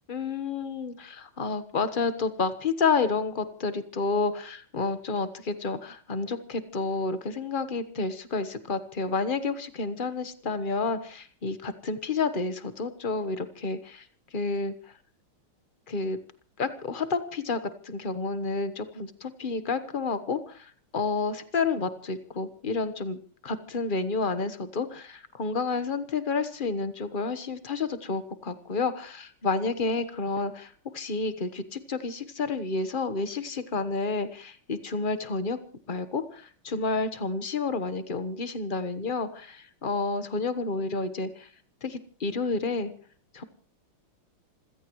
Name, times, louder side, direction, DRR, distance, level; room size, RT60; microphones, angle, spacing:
voice 1, 0.1-14.1 14.3-14.9 15.9-16.2 16.6-35.6 35.9-41.5 41.8-42.9 43.3-43.4, left 4 dB, 30° left, 10 dB, 1.1 m, -30 dB
27.0 x 16.0 x 3.1 m, 0.43 s
omnidirectional pair, 2.2 m